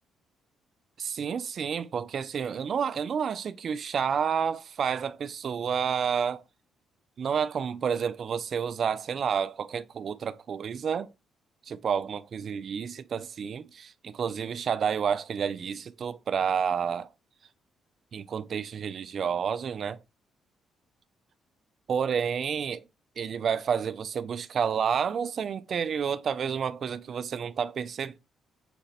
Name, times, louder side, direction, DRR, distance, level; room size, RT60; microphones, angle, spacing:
voice 1, 1.0-6.4 7.2-11.1 11.7-17.1 18.1-20.0 21.9-22.8 23.2-28.2, right 7 dB, 55° right, 0.3 m, -30 dB
4.9 x 2.1 x 4.0 m
cardioid pair, 90°, 0 cm